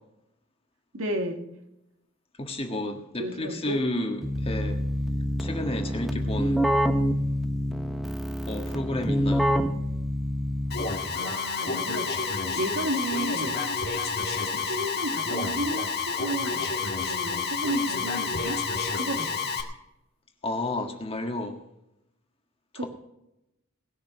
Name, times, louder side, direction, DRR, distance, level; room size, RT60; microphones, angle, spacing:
voice 1, 0.9-1.5 3.2-3.8 10.8-13.6 14.5-16.7 17.0-18.6 18.9-19.6 22.7-22.9, right 1 dB, 70° right, 4 dB, 2.0 m, -33 dB
voice 2, 2.4-4.8 5.4-6.7 8.3-9.5 20.4-21.6, left 1 dB, 25° left, 4 dB, 1.7 m, -32 dB
Keyboard (musical), 4.2-11.1, equal, ahead, 1.0 m, -27 dB
Alarm, 10.7-19.6, left 4 dB, 50° left, 1.9 m, -29 dB
19.5 x 6.7 x 6.1 m, 0.87 s
head